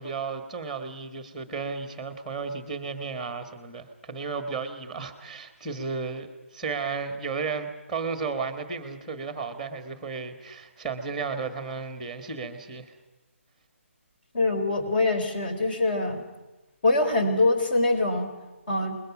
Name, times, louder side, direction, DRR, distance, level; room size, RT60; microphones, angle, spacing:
voice 1, 0.0-12.9, right 5 dB, ahead, 8 dB, 1.6 m, -34 dB
voice 2, 14.3-16.2 16.8-18.3 18.7-18.9, left 2 dB, 40° left, 7 dB, 4.6 m, -24 dB
27.5 x 21.5 x 6.1 m, 1.1 s
hypercardioid pair, 165°, 7 cm